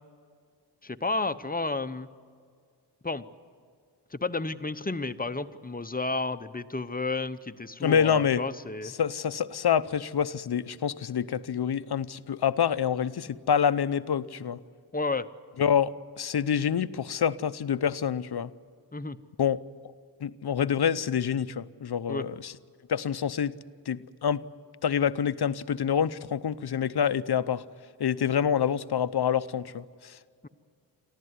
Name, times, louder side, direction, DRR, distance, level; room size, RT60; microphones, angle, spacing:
voice 1, 0.8-2.1 3.0-3.2 4.1-8.9 14.9-15.3 18.9-19.2 22.1-22.3 30.4-30.5, left 3 dB, 20° left, 12 dB, 0.8 m, -31 dB
voice 2, 7.8-8.4 9.0-14.6 15.6-18.5 19.4-19.6 20.2-22.5 22.9-23.5 23.9-24.4 24.8-27.6 28.0-30.2, left 8 dB, 65° left, 14 dB, 0.7 m, -27 dB
25.0 x 14.5 x 9.6 m, 2.1 s
wide cardioid pair, 65°, 43 cm